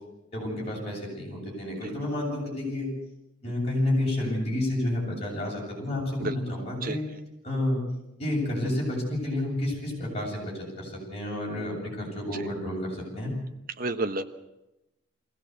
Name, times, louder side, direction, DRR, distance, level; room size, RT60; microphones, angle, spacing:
voice 1, 0.3-2.9 3.4-7.0 7.4-7.8 8.2-13.3, left 1 dB, 30° left, -3 dB, 7.9 m, -30 dB
voice 2, 13.8-14.2, right 2 dB, 45° right, 8 dB, 1.2 m, -30 dB
22.0 x 16.5 x 8.2 m, 0.92 s
head